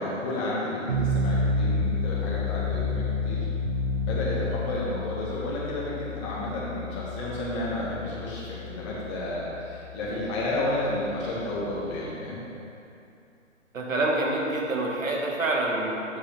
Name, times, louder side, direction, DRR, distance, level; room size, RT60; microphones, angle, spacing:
voice 1, 0.0-3.5 4.0-12.4, left 1 dB, 25° left, -7 dB, 1.7 m, -31 dB
sound 1, 0.9-12.0, left 2 dB, 25° right, 0.6 m, -30 dB
voice 2, 13.7-16.2, right 2 dB, 80° right, -1 dB, 1.8 m, -27 dB
7.9 x 7.6 x 3.4 m, 2.7 s
hypercardioid pair, 155°, 39 cm